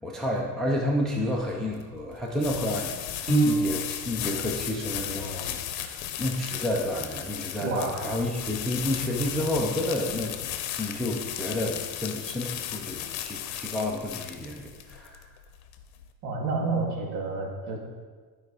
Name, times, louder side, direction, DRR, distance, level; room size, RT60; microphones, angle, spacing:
voice 1, 0.0-10.5 10.8-15.3, left 1 dB, ahead, 0 dB, 0.3 m, -30 dB
sound 1, 1.2-16.1, left 11 dB, 60° left, 0.8 m, -35 dB
Piano, 3.3-4.3, right 2 dB, 20° right, 1.9 m, -25 dB
voice 2, 7.6-8.0 16.2-17.8, right 3 dB, 75° right, 0 dB, 2.1 m, -29 dB
11.5 x 4.8 x 4.7 m, 1.5 s
cardioid pair, 165°, 42 cm